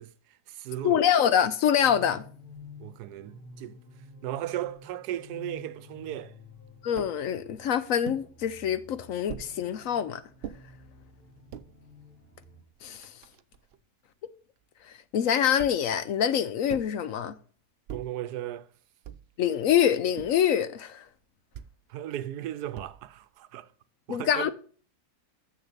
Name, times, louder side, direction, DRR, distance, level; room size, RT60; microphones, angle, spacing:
voice 1, 0.0-1.0 2.8-3.8 4.2-6.3 17.9-18.7 21.9-23.7 24.1-24.5, right 12 dB, 85° right, 1.2 m, -36 dB
voice 2, 0.8-2.2 6.8-10.2 12.8-13.1 14.9-17.3 19.4-21.0 24.1-24.5, left 9 dB, 65° left, 0.9 m, -25 dB
sound 1, 1.8-12.6, left 3 dB, 10° left, 2.5 m, -51 dB
sound 2, 7.0-7.2 8.0-8.3 9.3-9.5 10.4-10.6 11.3-11.7 12.4-12.5 12.7-13.8 15.6-15.9 16.7-17.0 17.9-18.2 19.0-19.4 20.2-20.5 21.5-21.8 22.7-23.2, right 8 dB, 70° right, 0.6 m, -42 dB
7.2 x 6.6 x 6.6 m
omnidirectional pair, 1.7 m